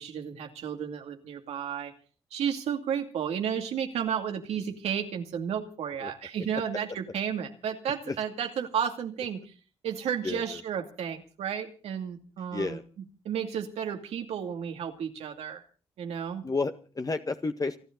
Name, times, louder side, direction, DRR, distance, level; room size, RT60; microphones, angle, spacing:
voice 1, 0.0-1.9 2.3-9.5 9.8-12.8 13.2-15.6 16.0-16.4, right 8 dB, 85° right, 4 dB, 2.5 m, -32 dB
voice 2, 10.2-10.6 12.5-12.8 16.4-17.8, left 3 dB, 35° left, 7 dB, 1.7 m, -31 dB
29.5 x 10.5 x 4.0 m, 0.39 s
supercardioid pair, 55°, 10 cm